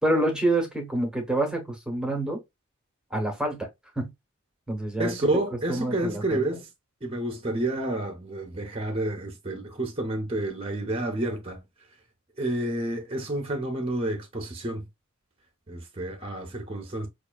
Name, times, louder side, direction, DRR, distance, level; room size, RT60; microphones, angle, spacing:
voice 1, 0.0-2.4 3.1-3.7 4.0-4.1 4.7-5.1 5.7-6.4, right 1 dB, 5° right, 0.9 m, -27 dB
voice 2, 5.0-6.7 7.0-11.6 12.4-14.9 15.7-17.1, right 1 dB, 25° right, 0.6 m, -29 dB
5.7 x 2.4 x 2.2 m
head